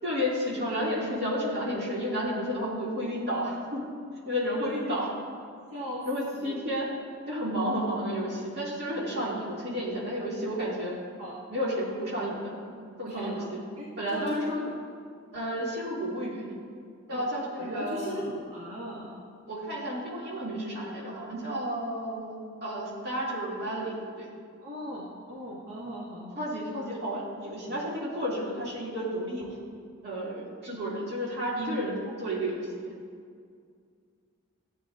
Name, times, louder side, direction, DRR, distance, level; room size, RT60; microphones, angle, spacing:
voice 1, 0.0-3.8 4.1-5.1 6.1-6.9 7.3-11.0 11.5-12.5 13.0-13.4 14.0-14.6 15.3-16.6 17.1-18.2 19.5-24.3 26.4-29.5 30.0-32.9, equal, 50° right, -6 dB, 2.1 m, -32 dB
voice 2, 4.5-5.1 5.7-6.1 6.3-6.5 11.2-11.4 13.1-14.7 17.1-17.2 17.5-19.2 24.6-26.4 27.7-27.8, equal, 90° right, -7 dB, 1.5 m, -38 dB
13.5 x 8.8 x 2.4 m, 2.2 s
head